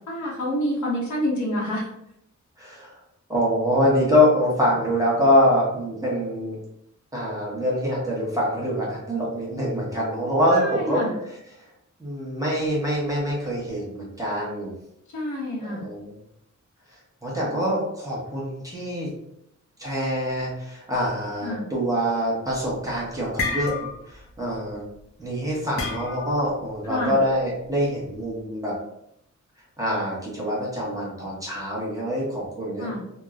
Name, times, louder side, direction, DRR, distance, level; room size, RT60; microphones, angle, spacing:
voice 1, 0.1-1.9 10.5-11.2 15.1-15.8 17.5-17.6 21.4-21.6 26.9-27.1 32.8-33.0, equal, 75° left, -4 dB, 0.9 m, -28 dB
voice 2, 2.6-2.9 3.3-6.6 7.1-11.4 12.0-14.7 15.6-16.1 17.2-19.1 19.8-24.8 25.2-28.7 29.8-33.0, equal, 10° right, -6 dB, 0.8 m, -25 dB
sound 1, 22.6-22.8 23.1-24.2 24.5-24.8 25.8-26.5, left 3 dB, 50° left, 0.5 m, -29 dB
2.9 x 2.0 x 2.3 m, 0.79 s
wide cardioid pair, 150°, 30 cm